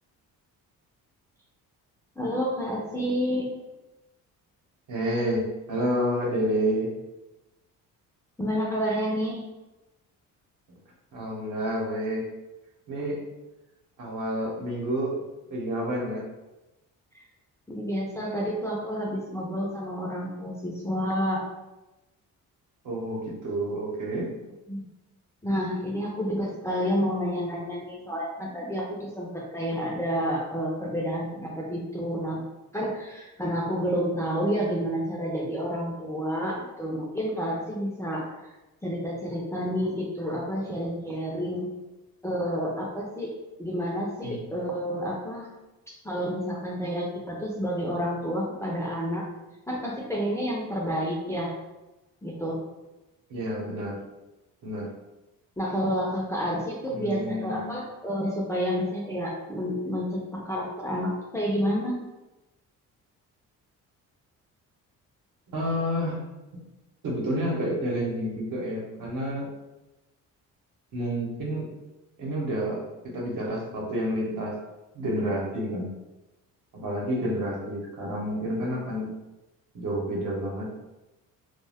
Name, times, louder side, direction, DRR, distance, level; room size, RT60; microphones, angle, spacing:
voice 1, 2.2-3.5 8.4-9.4 17.1-17.2 17.7-21.5 24.7-24.8 25.4-32.4 32.7-38.5 38.8-41.7 42.2-43.3 43.6-45.5 45.9-49.3 49.7-51.5 52.2-52.6 55.6-62.0, equal, 10° left, -4 dB, 0.4 m, -29 dB
voice 2, 4.9-6.9 10.7-10.8 11.1-12.3 12.9-13.2 14.0-15.1 15.5-16.2 22.8-24.3 44.2-44.4 53.3-54.0 54.6-54.9 56.9-57.7 65.5-66.2 67.0-69.5 70.9-71.7 72.2-74.6 74.9-75.9 76.7-79.1 79.7-80.8, equal, 65° right, -2 dB, 0.9 m, -29 dB
2.3 x 2.2 x 3.3 m, 1.0 s
cardioid pair, 110°, 34 cm